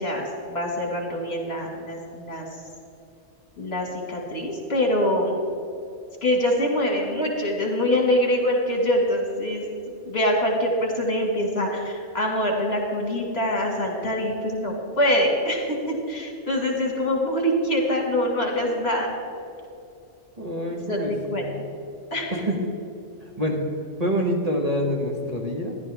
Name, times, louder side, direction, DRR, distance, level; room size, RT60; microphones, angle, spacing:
voice 1, 0.0-2.5 3.6-5.4 6.2-9.6 10.1-19.1 20.9-21.5 22.1-22.5, left 1 dB, 60° left, 0 dB, 2.2 m, -24 dB
voice 2, 20.4-21.5 22.5-22.6 23.4-23.7 24.0-25.8, equal, 35° right, 0 dB, 1.3 m, -26 dB
13.5 x 11.5 x 3.5 m, 2.6 s
omnidirectional pair, 1.2 m